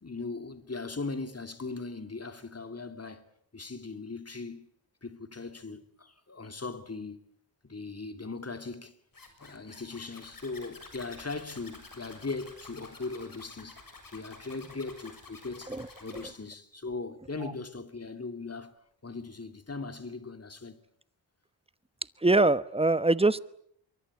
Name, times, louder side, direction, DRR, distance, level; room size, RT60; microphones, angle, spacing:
voice 1, 0.0-3.2 3.5-4.7 5.0-7.2 7.6-9.0 9.4-13.8 14.1-15.7 16.0-18.7 19.0-20.8, left 3 dB, 35° left, 2.9 m, -39 dB
Zipper (clothing), 9.1-16.3, left 3 dB, 50° left, 6.9 m, -50 dB
voice 2, 15.7-16.2 17.4-17.5 22.2-23.4, right 2 dB, 15° right, 1.1 m, -24 dB
25.0 x 23.5 x 8.5 m
cardioid pair, 65°, 44 cm